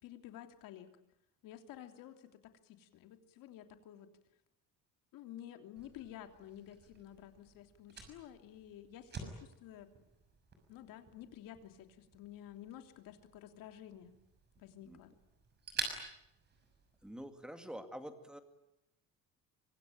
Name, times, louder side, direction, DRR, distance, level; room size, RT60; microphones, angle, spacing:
voice 1, 0.0-0.9 1.4-4.1 5.1-9.9 10.7-14.1 14.6-15.1, left 11 dB, 70° left, 7 dB, 3.1 m, -52 dB
Fire, 5.8-17.3, right 4 dB, 30° right, 6.2 m, -49 dB
voice 2, 17.0-18.4, equal, ahead, 7 dB, 2.1 m, -47 dB
25.5 x 24.5 x 9.0 m, 0.83 s
cardioid pair, 180°, 35 cm